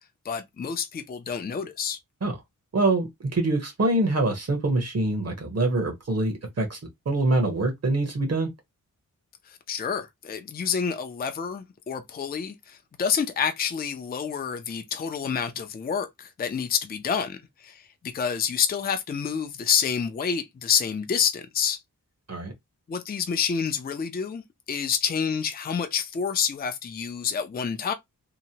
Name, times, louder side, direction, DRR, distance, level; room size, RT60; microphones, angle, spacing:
voice 1, 0.2-2.0 9.5-21.8 22.9-24.4 24.7-27.9, left 7 dB, 30° left, 0.4 m, -28 dB
voice 2, 2.7-6.8 7.1-8.5 22.3-22.5, right 2 dB, 50° right, 0.9 m, -25 dB
2.9 x 2.1 x 2.7 m
wide cardioid pair, 100°, 33 cm